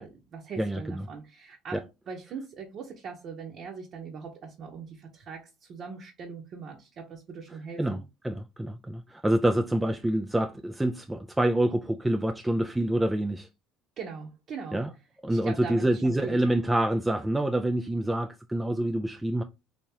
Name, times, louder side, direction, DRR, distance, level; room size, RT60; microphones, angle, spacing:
voice 1, 0.0-1.8 2.1-8.0 14.0-14.8 15.3-16.4, right 5 dB, 50° right, 0.8 m, -41 dB
voice 2, 0.6-1.0 1.7-1.8 7.8-8.0 8.2-13.5 14.7-14.9 15.2-19.4, right 1 dB, 10° right, 0.3 m, -27 dB
3.4 x 2.9 x 2.8 m
supercardioid pair, 85°, 0 cm